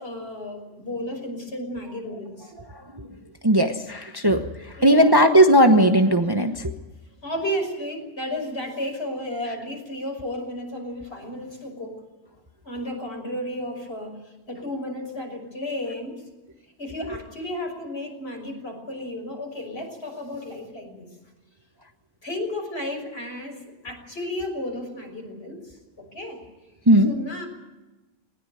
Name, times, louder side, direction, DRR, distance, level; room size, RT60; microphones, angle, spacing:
voice 1, 0.0-2.5 4.8-5.1 7.2-12.0 12.6-16.2 16.8-21.1 22.2-26.4 27.1-27.5, left 1 dB, 55° left, 2 dB, 6.1 m, -33 dB
voice 2, 3.4-4.5 4.8-6.7 26.9-27.1, right 1 dB, 20° right, 5 dB, 1.1 m, -17 dB
20.0 x 20.0 x 9.3 m, 1.1 s
omnidirectional pair, 1.3 m